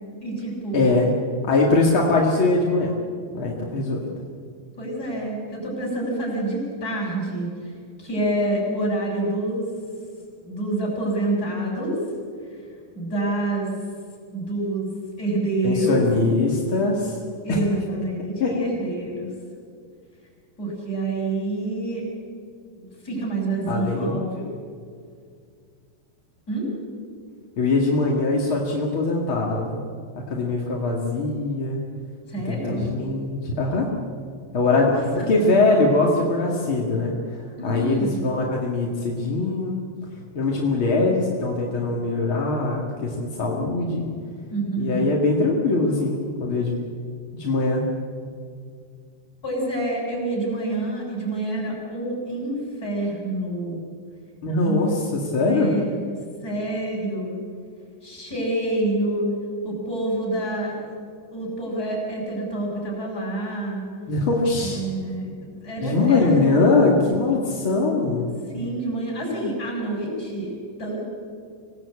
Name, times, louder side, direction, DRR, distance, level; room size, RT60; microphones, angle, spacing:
voice 1, 0.2-0.9 4.8-7.7 8.0-9.6 10.4-12.0 12.9-13.7 14.3-14.9 15.2-16.0 17.4-19.3 20.6-22.0 22.8-24.5 26.5-26.7 32.3-32.9 34.9-35.3 37.6-38.2 44.5-45.1 49.4-53.8 54.6-54.8 55.5-56.0 56.4-57.3 58.0-59.3 59.6-60.8 61.3-63.8 64.6-66.4 68.5-70.5 70.8-71.0, right 2 dB, 20° left, -3 dB, 7.5 m, -27 dB
voice 2, 0.7-1.1 1.5-2.9 3.3-4.1 15.6-17.2 17.5-17.6 18.4-18.5 23.7-24.2 27.6-29.8 30.1-31.8 32.4-33.9 34.5-37.1 37.6-39.8 40.3-44.1 44.8-46.8 47.3-47.8 54.4-55.7 64.1-64.8 65.8-68.3, left 3 dB, 40° left, -2 dB, 2.0 m, -22 dB
26.0 x 19.0 x 8.6 m, 2.2 s
omnidirectional pair, 5.2 m